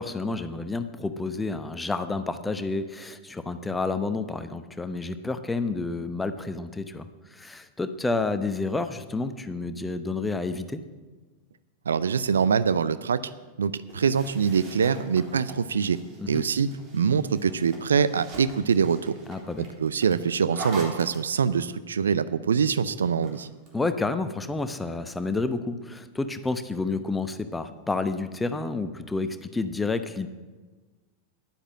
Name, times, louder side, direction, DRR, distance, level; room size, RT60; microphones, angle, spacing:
voice 1, 0.0-10.8 16.2-16.4 19.3-19.7 23.7-30.3, left 3 dB, 10° left, 10 dB, 0.9 m, -30 dB
voice 2, 11.9-13.2 13.6-16.0 16.3-16.7 16.9-19.2 19.8-23.5, right 6 dB, 70° right, 15 dB, 0.5 m, -24 dB
sound 1, 13.9-21.7 22.9-23.8, right 2 dB, 35° right, 3.3 m, -43 dB
11.0 x 10.0 x 7.4 m, 1.3 s
figure-of-eight pair, 90°, 0 cm